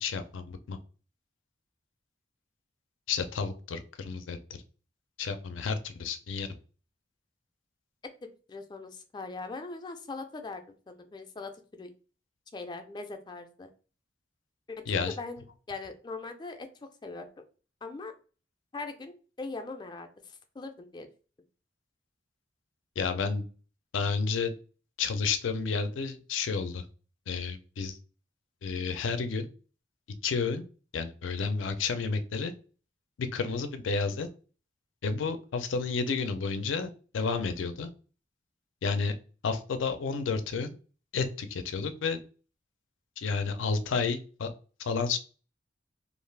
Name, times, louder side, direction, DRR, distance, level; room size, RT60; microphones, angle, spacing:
voice 1, 0.0-0.8 3.1-4.4 5.2-6.5 14.9-15.1 23.0-23.5 23.9-24.5 25.0-26.8 27.3-28.0 28.6-29.5 30.2-30.6 30.9-32.5 33.2-34.3 35.0-37.9 38.8-39.1 39.4-40.7 41.1-42.2 43.2-44.5 44.8-45.2, left 5 dB, 90° left, 9 dB, 0.4 m, -31 dB
voice 2, 8.2-11.9 12.5-13.7 14.7-16.7 17.0-17.3 17.8-18.1 18.7-21.1, left 3 dB, 25° left, 6 dB, 0.3 m, -41 dB
2.5 x 2.3 x 3.2 m, 0.37 s
head